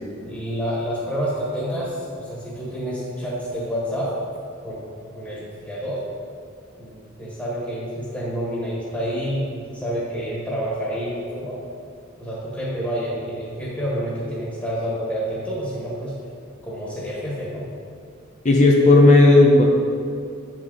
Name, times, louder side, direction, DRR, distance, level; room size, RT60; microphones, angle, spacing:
voice 1, 0.3-4.1 4.6-6.0 6.8-11.6 12.2-16.1 16.6-17.6, equal, 10° left, -8 dB, 1.8 m, -28 dB
voice 2, 18.4-19.7, left 2 dB, 35° left, -1 dB, 0.7 m, -12 dB
8.4 x 6.0 x 4.1 m, 2.4 s
head